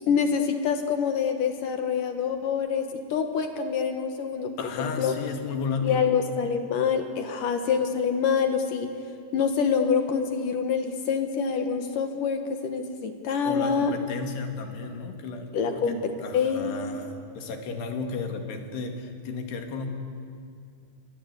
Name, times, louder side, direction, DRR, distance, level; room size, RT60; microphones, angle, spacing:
voice 1, 0.1-2.8 3.1-4.5 4.8-5.1 5.8-8.9 9.3-13.9 15.5-16.8, left 6 dB, 60° left, 6 dB, 2.7 m, -26 dB
voice 2, 4.6-6.1 13.5-19.9, left 4 dB, 80° left, 5 dB, 4.4 m, -33 dB
29.5 x 24.5 x 8.3 m, 2.4 s
omnidirectional pair, 4.7 m